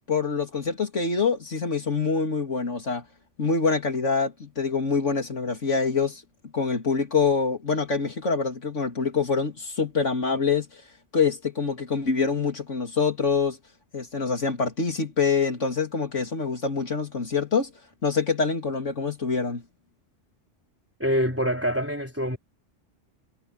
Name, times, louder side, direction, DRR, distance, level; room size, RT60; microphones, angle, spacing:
voice 1, 0.1-3.0 3.4-6.2 6.5-10.8 11.1-13.6 13.9-17.7 18.0-19.6, left 5 dB, 75° left, 3.4 m, -25 dB
voice 2, 21.0-22.4, equal, 10° right, 4.5 m, -25 dB
omnidirectional pair, 1.3 m